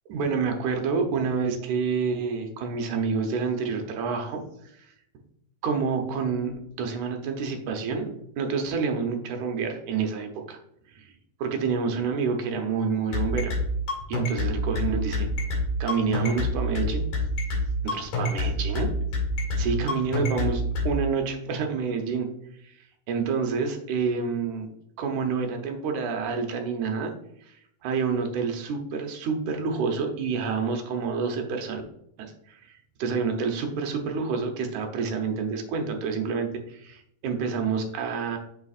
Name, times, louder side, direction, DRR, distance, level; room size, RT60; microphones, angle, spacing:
voice 1, 0.1-4.4 4.7-4.9 5.6-10.6 10.9-11.1 11.4-13.5 14.1-15.3 15.8-17.1 17.8-18.9 19.6-22.3 22.6-22.7 23.1-24.7 25.0-27.1 27.5-27.6 27.8-31.8 32.2-32.7 33.0-38.4, right 5 dB, 75° right, 4 dB, 2.1 m, -28 dB
sound 1, 13.1-20.9, left 3 dB, 75° left, 3.5 m, -26 dB
6.9 x 6.5 x 2.4 m, 0.74 s
omnidirectional pair, 3.7 m